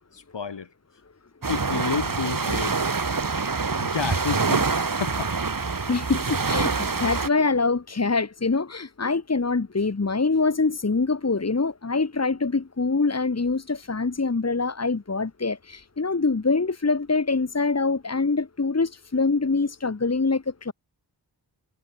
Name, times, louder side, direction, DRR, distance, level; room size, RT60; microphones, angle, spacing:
voice 1, 0.1-0.7 1.5-2.8 3.8-5.3, left 5 dB, 80° left, 7.6 m, -30 dB
sound 1, 1.4-7.3, right 4 dB, 50° right, 4.5 m, -25 dB
voice 2, 5.9-20.7, left 4 dB, 35° left, 2.5 m, -24 dB
wide cardioid pair, 85°, 42 cm